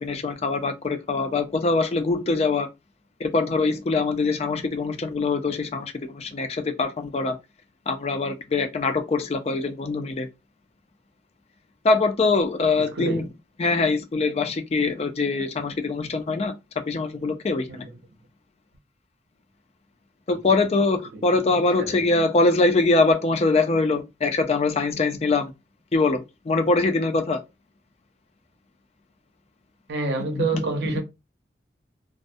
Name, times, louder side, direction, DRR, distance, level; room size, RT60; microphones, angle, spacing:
voice 1, 0.0-2.7 3.2-7.4 7.9-10.3 11.8-13.2 13.6-16.5 16.9-17.8 20.3-25.5 25.9-27.4 30.3-30.6 30.9-31.0, left 3 dB, 35° left, 0.3 m, -23 dB
voice 2, 12.8-13.3 17.7-18.0 21.1-21.2 21.8-22.1 29.9-31.0, right 3 dB, 65° right, 0.6 m, -28 dB
2.3 x 2.0 x 2.5 m
head